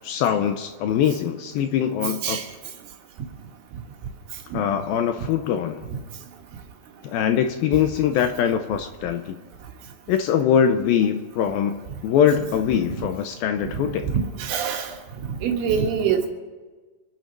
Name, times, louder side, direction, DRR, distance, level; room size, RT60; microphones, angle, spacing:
voice 1, 0.0-2.4 4.5-5.9 7.0-9.4 10.1-14.2, left 8 dB, 75° left, 7 dB, 2.2 m, -22 dB
voice 2, 13.6-14.9 15.4-16.3, right 7 dB, 70° right, 3 dB, 3.4 m, -25 dB
26.5 x 9.3 x 5.3 m, 1.3 s
omnidirectional pair, 4.8 m